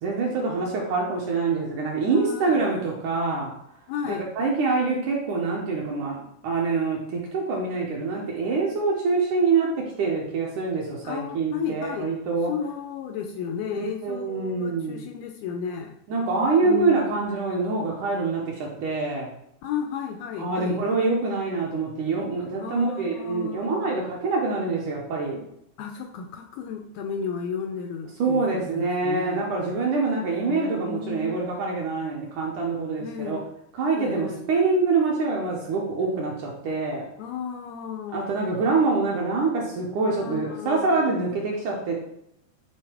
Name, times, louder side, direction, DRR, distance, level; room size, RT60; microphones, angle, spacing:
voice 1, 0.0-3.5 4.0-12.5 13.7-15.0 16.1-19.3 20.4-25.4 28.2-33.4 33.8-37.1 38.1-41.9, right 4 dB, 65° right, -2 dB, 2.1 m, -25 dB
voice 2, 2.1-2.6 3.9-4.3 11.0-12.1 12.5-15.9 16.6-17.3 19.6-20.9 22.6-24.1 25.8-29.4 30.5-31.4 33.0-33.5 34.0-34.5 37.2-38.3 40.1-41.2, left 7 dB, 80° left, 5 dB, 2.3 m, -33 dB
11.0 x 4.1 x 4.6 m, 0.76 s
omnidirectional pair, 4.8 m